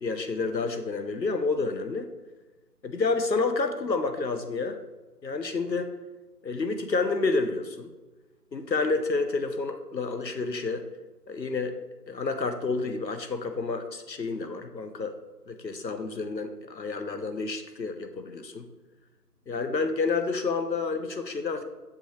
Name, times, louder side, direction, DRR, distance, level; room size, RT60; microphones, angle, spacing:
voice 1, 0.0-2.1 2.8-4.8 5.2-5.9 6.4-7.9 8.5-10.9 11.3-11.8 12.1-15.2 15.5-18.7 19.5-21.6, left 3 dB, 85° left, 8 dB, 0.8 m, -29 dB
7.1 x 5.6 x 3.0 m, 1.2 s
figure-of-eight pair, 180°, 50 cm